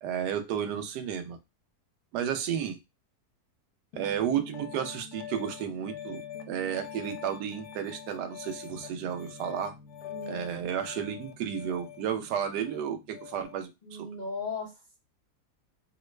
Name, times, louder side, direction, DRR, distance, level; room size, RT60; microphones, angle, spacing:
voice 1, 0.0-1.4 2.1-2.8 3.9-9.7 10.3-14.1, right 9 dB, 85° right, 6 dB, 1.2 m, -32 dB
Piano, 3.9-13.6, left 8 dB, 75° left, 1.1 m, -44 dB
voice 2, 10.1-10.5 13.8-15.0, left 3 dB, 55° left, -2 dB, 0.5 m, -37 dB
3.1 x 2.1 x 3.0 m, 0.23 s
omnidirectional pair, 1.7 m